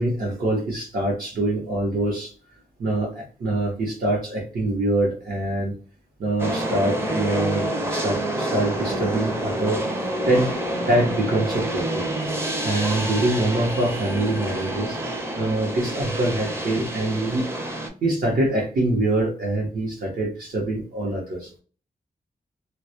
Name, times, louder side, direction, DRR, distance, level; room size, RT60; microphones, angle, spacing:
voice 1, 0.0-2.3 2.8-5.7 6.2-9.8 10.3-10.5 10.9-12.1 12.6-15.0 15.4-17.5 18.0-21.5, right 1 dB, 70° right, -3 dB, 0.8 m, -24 dB
sound 1, 6.4-17.9, right 1 dB, 15° right, 0.5 m, -28 dB
2.2 x 2.1 x 2.7 m, 0.38 s
wide cardioid pair, 150°, 15 cm